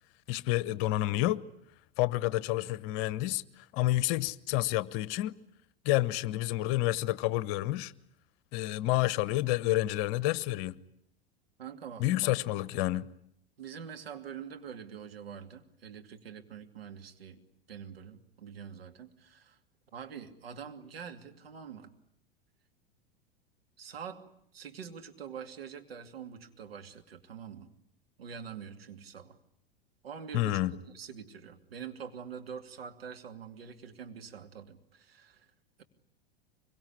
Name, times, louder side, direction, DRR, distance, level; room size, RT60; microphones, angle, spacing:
voice 1, 0.3-1.5 2.0-5.4 5.8-7.9 8.5-10.8 12.0-13.1 30.3-30.8, left 16 dB, 45° left, 1.0 m, -29 dB
voice 2, 11.6-12.3 13.6-17.4 17.7-19.6 19.9-21.9 23.8-24.3 24.5-27.7 28.2-29.4 30.0-30.6 30.9-35.5, right 7 dB, 75° right, 2.8 m, -45 dB
24.5 x 23.5 x 10.0 m
figure-of-eight pair, 85°, 30 cm